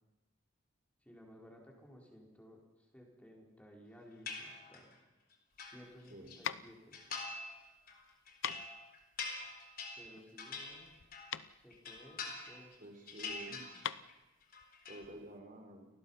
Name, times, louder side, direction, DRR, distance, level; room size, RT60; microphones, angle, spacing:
voice 1, 1.0-2.6 2.9-4.9 5.6-7.0 10.0-10.9 11.6-12.7, equal, 5° left, -1 dB, 4.5 m, -57 dB
sound 1, 4.3-5.0 5.3-6.4 6.9-7.6 7.9-11.4 11.7-12.8 13.1-14.1 14.4-15.0, left 4 dB, 45° left, 4.1 m, -45 dB
sound 2, 5.5-15.3, left 8 dB, 65° left, 0.7 m, -46 dB
voice 2, 12.8-13.7 14.9-15.9, right 1 dB, 45° right, 4 dB, 4.4 m, -50 dB
29.5 x 20.0 x 5.7 m, 1.1 s
head